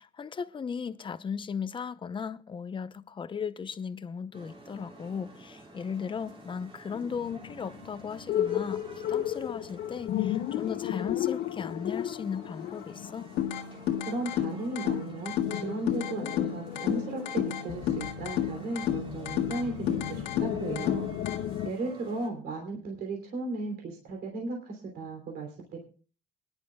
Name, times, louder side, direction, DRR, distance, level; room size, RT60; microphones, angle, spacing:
voice 1, 0.0-13.3, left 6 dB, 30° left, 0.7 m, -37 dB
sound 1, 4.3-22.3, right 2 dB, 30° right, 3.4 m, -50 dB
sound 2, 6.9-14.3 14.6-14.7 15.0-15.1 15.5-21.7, left 11 dB, 70° left, 0.7 m, -35 dB
sound 3, 13.4-21.4, left 10 dB, 90° left, 1.7 m, -32 dB
voice 2, 14.0-21.1 21.6-25.8, right 2 dB, 65° right, 3.2 m, -36 dB
24.0 x 11.0 x 2.3 m
cardioid pair, 110°, 17 cm